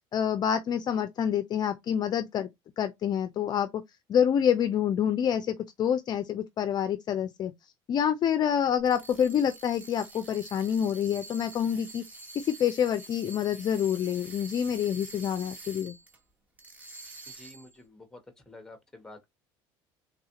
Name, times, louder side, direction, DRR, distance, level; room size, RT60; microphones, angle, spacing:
voice 1, 0.1-2.5 2.8-3.8 4.1-7.5 7.9-12.0 12.4-15.9, left 9 dB, 40° left, 0.4 m, -27 dB
sound 1, 8.8-16.2 16.6-17.8, right 2 dB, 15° right, 1.0 m, -47 dB
voice 2, 17.4-18.2 18.5-19.2, left 2 dB, 5° left, 1.0 m, -49 dB
3.5 x 2.4 x 2.8 m
cardioid pair, 110°, 11 cm